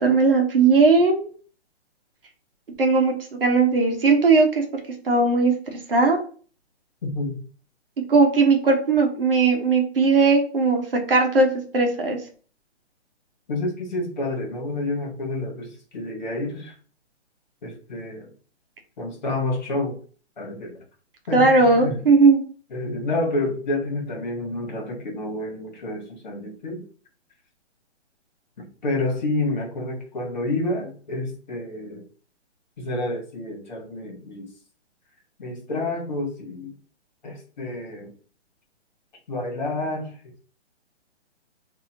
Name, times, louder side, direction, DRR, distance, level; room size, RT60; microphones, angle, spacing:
voice 1, 0.0-1.3 2.8-3.1 3.4-5.5 5.9-6.2 8.1-10.8 11.1-11.5 11.7-12.2 21.3-22.4, right 4 dB, 55° right, 3 dB, 1.0 m, -18 dB
voice 2, 13.5-16.7 17.6-18.3 19.0-20.0 20.4-20.7 21.3-22.0 22.7-26.8 28.6-32.0 32.8-34.4 35.4-36.7 37.2-38.1 39.3-40.1, left 2 dB, 40° left, -1 dB, 1.5 m, -29 dB
3.7 x 2.7 x 2.8 m, 0.41 s
hypercardioid pair, 180°, 35 cm